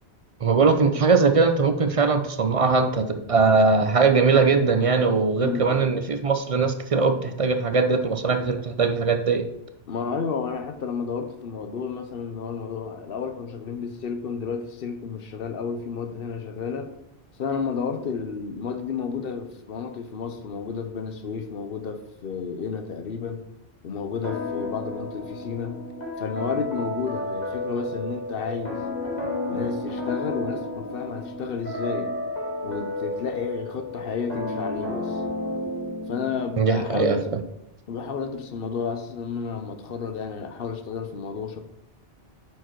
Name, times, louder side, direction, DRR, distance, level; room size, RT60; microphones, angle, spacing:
voice 1, 0.4-9.5 36.6-37.2, right 4 dB, 45° right, 7 dB, 0.5 m, -20 dB
voice 2, 5.4-5.9 9.9-16.9 17.4-23.4 23.8-25.8 26.2-28.9 29.5-32.1 32.6-35.2 36.1-37.3 37.9-41.6, left 6 dB, 65° left, 7 dB, 0.9 m, -31 dB
sound 1, 24.2-36.6, left 1 dB, 40° left, 2.2 m, -32 dB
8.3 x 4.7 x 4.6 m, 0.84 s
omnidirectional pair, 1.1 m